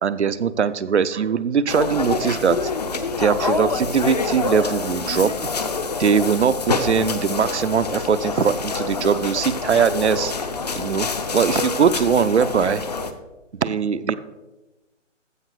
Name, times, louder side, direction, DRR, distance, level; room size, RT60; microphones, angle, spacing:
voice 1, 0.0-2.7 3.2-5.3 6.0-10.3 10.8-12.8 13.6-14.1, right 6 dB, 60° right, 15 dB, 0.6 m, -21 dB
sound 1, 1.7-13.1, left 4 dB, 35° left, 0.6 m, -26 dB
14.5 x 5.3 x 4.6 m, 1.1 s
figure-of-eight pair, 145°, 38 cm